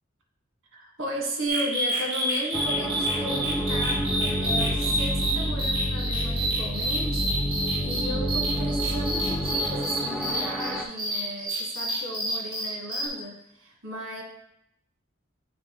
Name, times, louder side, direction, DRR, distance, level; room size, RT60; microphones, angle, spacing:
voice 1, 0.7-14.2, right 1 dB, 65° right, 0 dB, 1.5 m, -35 dB
sound 1, 1.5-13.1, right 1 dB, 25° right, 1.8 m, -29 dB
sound 2, 2.5-10.8, equal, ahead, 0.5 m, -29 dB
8.4 x 4.4 x 3.0 m, 0.82 s
head